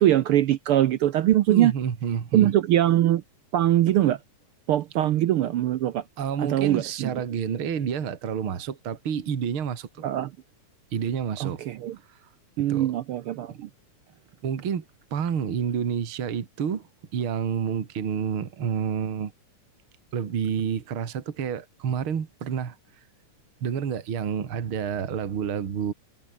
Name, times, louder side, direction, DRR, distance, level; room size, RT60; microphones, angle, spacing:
voice 1, 0.0-1.7 2.3-3.2 3.5-4.2 4.7-6.0 6.4-7.1 10.0-10.3 11.4-12.0 12.6-13.7, right 13 dB, 75° right, 1.3 m, -22 dB
voice 2, 1.5-2.5 6.2-10.1 10.9-11.6 12.1-12.2 12.6-12.9 13.5-13.6 14.4-14.8 15.1-16.9 17.1-19.3 20.1-22.8 23.6-25.9, right 7 dB, 50° right, 2.7 m, -29 dB
omnidirectional pair, 3.3 m